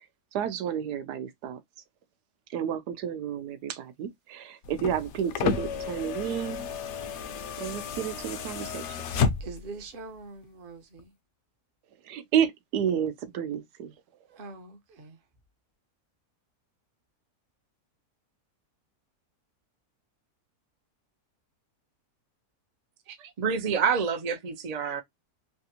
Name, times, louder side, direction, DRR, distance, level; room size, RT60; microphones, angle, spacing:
voice 1, 0.3-1.6 2.5-6.6 7.6-9.0 12.0-13.9, right 9 dB, 90° right, 1.2 m, -31 dB
sound 1, 4.6-9.8 11.0-11.1, left 5 dB, 65° left, 0.7 m, -31 dB
voice 2, 9.4-11.1 14.3-15.2, right 3 dB, 45° right, 0.8 m, -43 dB
voice 3, 23.1-25.0, right 6 dB, 65° right, 0.3 m, -28 dB
3.4 x 2.5 x 2.7 m
omnidirectional pair, 1.7 m